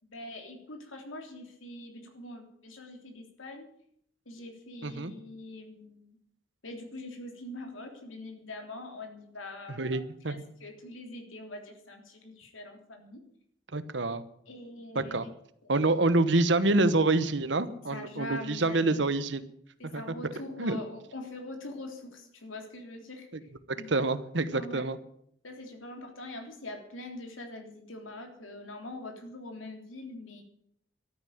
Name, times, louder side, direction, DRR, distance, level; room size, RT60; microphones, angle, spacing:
voice 1, 0.0-3.7 4.3-6.2 6.6-10.0 10.3-13.2 14.5-15.3 15.6-15.7 17.9-19.0 19.8-23.5 23.8-24.1 24.5-24.9 25.4-30.4, left 1 dB, 90° left, 3 dB, 3.5 m, -43 dB
voice 2, 9.8-10.4 13.7-14.2 14.9-15.2 15.7-19.4 19.9-20.0 20.6-20.8 23.7-25.0, right 2 dB, 70° right, 13 dB, 1.1 m, -27 dB
13.0 x 9.5 x 9.3 m, 0.70 s
head